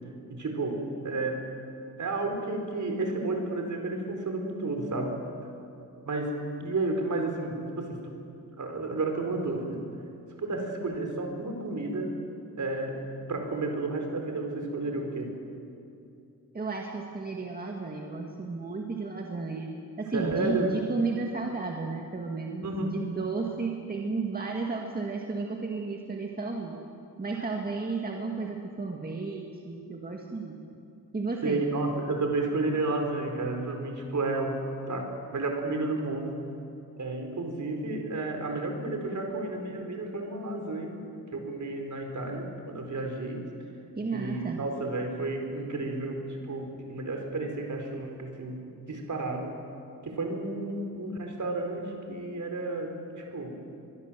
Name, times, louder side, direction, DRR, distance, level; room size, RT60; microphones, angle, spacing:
voice 1, 0.3-1.4 2.0-5.2 6.0-8.2 8.6-9.8 10.4-12.2 12.6-15.4 20.1-20.8 22.6-22.9 27.3-27.4 31.4-36.4 37.0-41.0 41.3-43.5 44.1-48.6 48.9-49.6 50.0-53.6, right 2 dB, 55° right, 3 dB, 4.5 m, -32 dB
voice 2, 16.5-19.7 20.0-26.8 27.2-30.6 31.1-31.6 44.0-44.6, right 4 dB, 25° right, 0 dB, 2.1 m, -33 dB
23.5 x 23.0 x 7.6 m, 2.5 s
wide cardioid pair, 135°, 36 cm